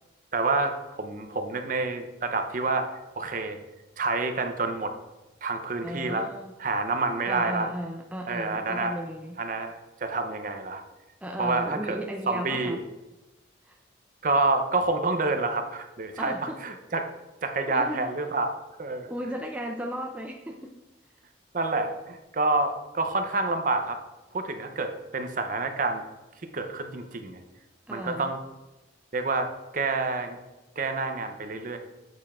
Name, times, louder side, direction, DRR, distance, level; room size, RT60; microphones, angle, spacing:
voice 1, 0.3-3.6 4.0-4.9 5.4-6.3 6.6-7.7 8.3-9.0 9.4-10.8 11.4-12.0 12.3-12.8 14.2-17.0 17.4-18.5 18.8-19.1 21.5-24.0 24.3-26.0 26.5-27.4 27.9-28.4 29.1-30.4 30.8-31.8, right 3 dB, 45° right, 6 dB, 0.6 m, -28 dB
voice 2, 5.8-6.5 7.3-9.4 11.2-12.8 13.7-13.8 16.2-16.6 17.7-18.1 19.1-20.7 27.9-28.3, equal, 5° right, 2 dB, 0.3 m, -35 dB
8.0 x 6.6 x 2.4 m, 1.1 s
head